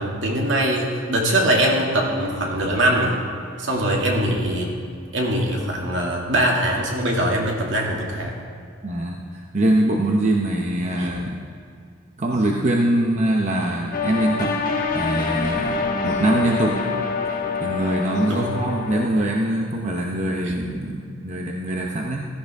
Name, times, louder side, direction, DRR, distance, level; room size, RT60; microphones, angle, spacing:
voice 1, 0.0-3.2 3.6-4.7 5.1-8.4 11.0-11.1 18.3-18.6 20.4-20.6, right 1 dB, 65° right, -1 dB, 2.3 m, -22 dB
voice 2, 8.8-11.4 12.2-14.6 14.9-16.8 17.6-22.3, right 1 dB, 35° right, 0 dB, 0.8 m, -23 dB
sound 1, 13.9-19.0, left 4 dB, 45° left, 1.3 m, -26 dB
16.0 x 13.5 x 3.6 m, 2.3 s
head